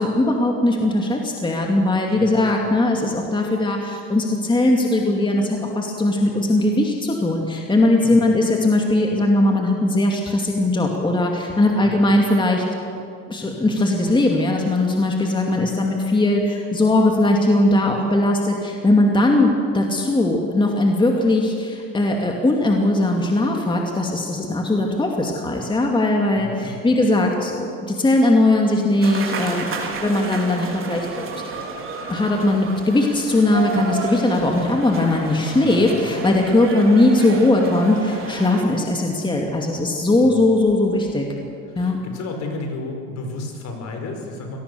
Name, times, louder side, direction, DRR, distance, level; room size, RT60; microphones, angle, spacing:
voice 1, 0.0-12.6 13.3-31.6 32.1-41.3 41.8-42.0, left 2 dB, 15° left, 1 dB, 2.4 m, -19 dB
voice 2, 2.2-2.6 8.0-8.2 11.8-12.1 26.4-27.0 35.6-36.2 40.2-40.4 41.7-44.6, left 3 dB, 50° left, 4 dB, 5.0 m, -33 dB
sound 1, 29.0-38.6, right 4 dB, 40° right, 4.0 m, -31 dB
23.5 x 18.5 x 7.0 m, 2.4 s
supercardioid pair, 105°, 34 cm